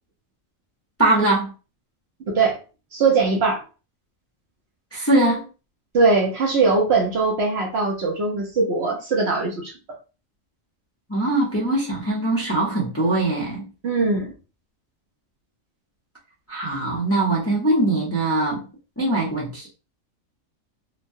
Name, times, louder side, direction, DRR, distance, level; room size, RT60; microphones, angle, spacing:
voice 1, 1.0-1.5 4.9-5.5 11.1-13.6 16.5-18.7 19.0-19.7, right 2 dB, 15° left, -5 dB, 0.6 m, -21 dB
voice 2, 2.3-2.6 2.9-3.6 5.9-9.7 13.8-14.3, right 4 dB, 60° right, 1 dB, 0.9 m, -20 dB
3.0 x 2.2 x 2.6 m, 0.32 s
omnidirectional pair, 1.4 m